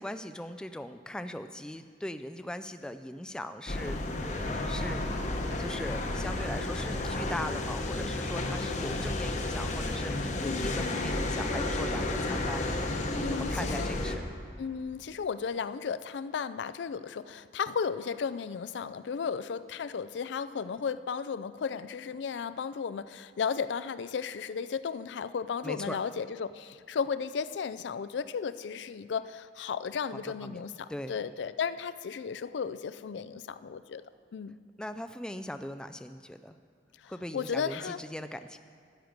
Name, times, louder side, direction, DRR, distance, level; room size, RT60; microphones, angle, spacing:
voice 1, 0.0-14.2 25.6-26.0 30.1-30.6 30.9-31.2 34.8-36.6 37.1-38.6, left 1 dB, 5° left, 8 dB, 0.3 m, -40 dB
sound 1, 3.7-14.2, left 2 dB, 45° left, 0.9 m, -32 dB
voice 2, 10.4-11.2 13.2-13.9 14.6-34.0 34.3-34.6 37.0-38.0, left 6 dB, 85° left, 13 dB, 0.4 m, -34 dB
12.5 x 9.2 x 5.2 m, 2.2 s
head